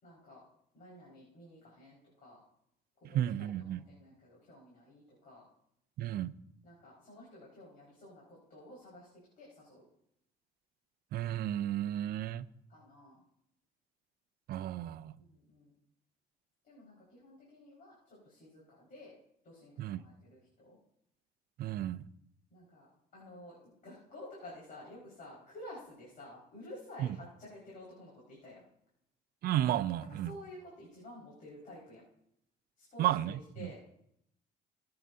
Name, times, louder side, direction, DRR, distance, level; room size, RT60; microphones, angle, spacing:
voice 1, 0.0-0.4 0.7-2.4 3.1-5.4 6.6-9.1 9.4-9.8 12.7-13.2 15.1-15.7 16.6-19.1 19.4-20.8 22.5-28.6 30.1-32.0 32.8-33.9, left 1 dB, 50° left, 5.1 m, -52 dB
voice 2, 3.1-3.8 6.0-6.3 11.1-12.5 14.5-15.1 19.8-20.0 21.6-22.0 29.4-30.3 33.0-33.3 33.6-33.7, right 12 dB, 65° right, 0.6 m, -32 dB
20.0 x 9.0 x 2.8 m
cardioid pair, 110°, 17 cm